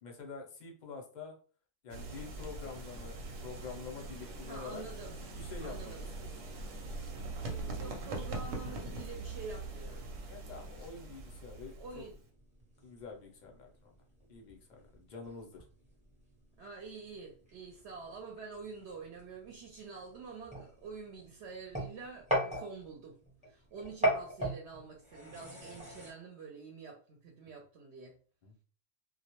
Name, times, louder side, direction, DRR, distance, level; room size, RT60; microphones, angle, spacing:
voice 1, 0.0-1.4 1.8-3.2 3.4-4.8 5.3-5.9 6.2-6.3 7.4-8.0 10.3-12.0 12.8-13.9 14.3-15.6 28.4-28.5, left 5 dB, 50° left, 1 dB, 0.6 m, -47 dB
sound 1, 1.9-12.2, right 2 dB, 90° right, 1.0 m, -42 dB
voice 2, 4.5-5.2 5.6-6.0 7.8-10.1 11.8-12.2 16.6-23.2 23.4-28.1, right 4 dB, 65° right, 1 dB, 0.8 m, -47 dB
sound 2, 10.1-26.1, equal, 10° right, 0.5 m, -41 dB
2.3 x 2.0 x 2.9 m, 0.39 s
omnidirectional pair, 1.3 m